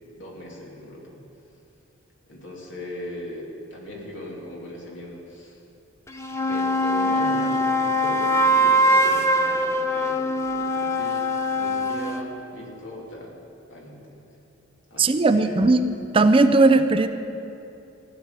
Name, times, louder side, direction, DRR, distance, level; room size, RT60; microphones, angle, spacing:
voice 1, 0.2-1.2 2.3-5.6 6.5-11.3 11.5-13.3 13.7-14.2 14.9-15.7, equal, 70° left, -3 dB, 3.0 m, -38 dB
sound 1, 6.1-12.3, equal, 15° left, 0.7 m, -22 dB
voice 2, 15.0-15.8 16.1-17.1, right 3 dB, 30° right, 9 dB, 0.5 m, -17 dB
15.5 x 6.1 x 9.8 m, 2.7 s
head